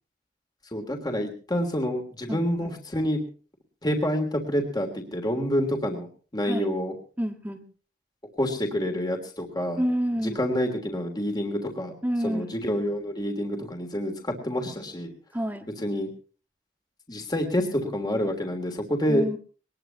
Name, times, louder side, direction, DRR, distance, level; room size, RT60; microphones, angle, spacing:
voice 1, 0.7-3.2 3.8-6.1 6.3-6.9 8.4-9.8 10.2-11.9 12.2-15.1 15.8-16.1 17.1-19.2, equal, 25° left, 4 dB, 3.1 m, -27 dB
voice 2, 2.3-2.7 6.4-6.7 7.2-7.7 9.8-10.4 12.0-12.5 15.3-15.7 19.1-19.4, equal, 10° right, 5 dB, 1.6 m, -28 dB
22.0 x 20.5 x 2.9 m, 0.39 s
head